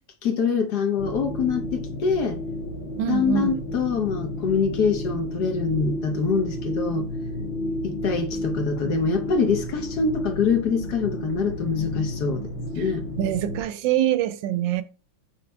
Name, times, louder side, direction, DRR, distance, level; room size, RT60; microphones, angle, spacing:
voice 1, 0.2-2.4 3.1-7.1 7.8-13.0, left 5 dB, 60° left, 1.3 m, -24 dB
sound 1, 1.0-13.6, left 1 dB, 85° left, 1.8 m, -32 dB
voice 2, 3.0-3.6 12.8-12.9 13.2-14.8, right 12 dB, 80° right, 1.3 m, -24 dB
5.9 x 3.6 x 5.2 m
omnidirectional pair, 2.1 m